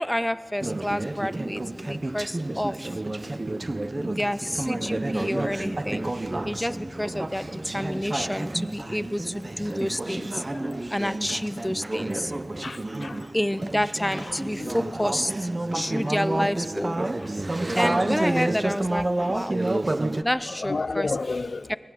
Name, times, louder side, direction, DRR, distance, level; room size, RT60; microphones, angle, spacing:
voice 1, 0.0-3.0 4.0-6.1 6.4-10.4 10.9-12.3 13.3-17.0 17.8-19.6 20.2-21.2 21.7-21.8, equal, 5° left, 0.5 m, -29 dB
Conversation / Chatter, 0.6-20.2, right 2 dB, 30° right, 0.7 m, -30 dB
sound 1, 3.6-13.0, equal, 15° right, 4.0 m, -51 dB
voice 2, 12.6-13.2 14.6-14.7 19.2-19.3 20.6-21.7, left 3 dB, 60° left, 0.6 m, -31 dB
23.0 x 19.0 x 7.8 m
wide cardioid pair, 90°, 0 cm